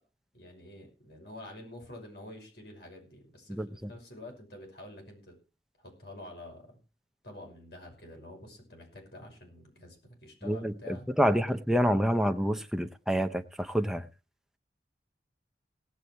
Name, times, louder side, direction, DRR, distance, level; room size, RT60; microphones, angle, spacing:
voice 1, 0.3-5.3 5.8-6.7 7.2-11.6, left 1 dB, 70° left, 5.8 m, -48 dB
voice 2, 10.5-14.1, equal, 5° right, 0.7 m, -27 dB
17.5 x 8.3 x 4.6 m
head